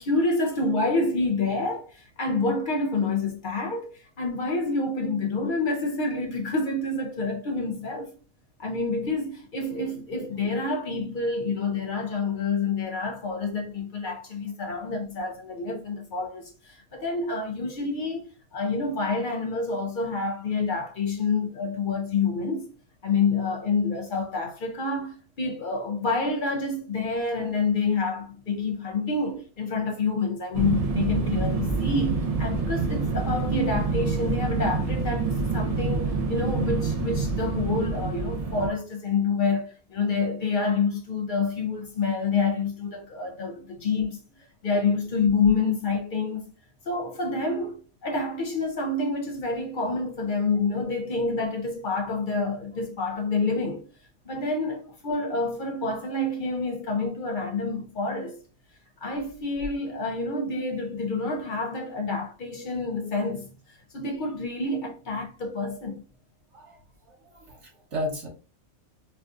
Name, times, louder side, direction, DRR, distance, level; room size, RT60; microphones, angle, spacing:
voice 1, 0.0-8.1 8.6-18.2 18.5-22.7 23.0-44.2 44.6-46.5 46.9-53.8 54.3-58.4 59.0-66.0, left 3 dB, 65° left, 0.5 m, -28 dB
sound 1, 30.5-38.7, right 4 dB, 75° right, 0.3 m, -27 dB
voice 2, 67.1-68.3, left 1 dB, 60° right, 1.2 m, -34 dB
4.5 x 2.3 x 2.4 m
omnidirectional pair, 1.4 m